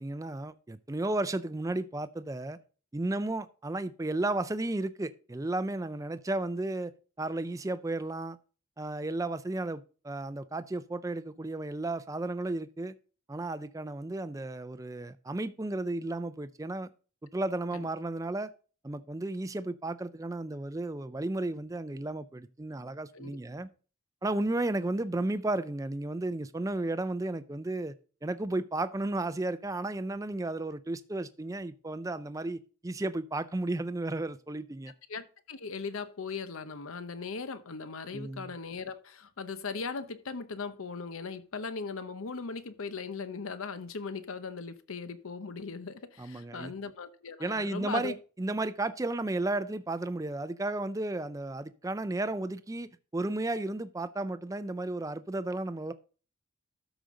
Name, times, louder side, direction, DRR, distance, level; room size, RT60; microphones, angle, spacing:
voice 1, 0.0-2.6 2.9-6.9 7.2-8.4 8.8-12.9 13.3-16.9 17.2-18.5 18.8-23.7 24.2-27.9 28.2-34.9 38.1-38.5 46.2-46.7 47.4-55.9, right 2 dB, 15° right, 0.4 m, -33 dB
voice 2, 35.1-48.1, left 4 dB, 80° left, 0.8 m, -39 dB
13.0 x 5.1 x 3.7 m
head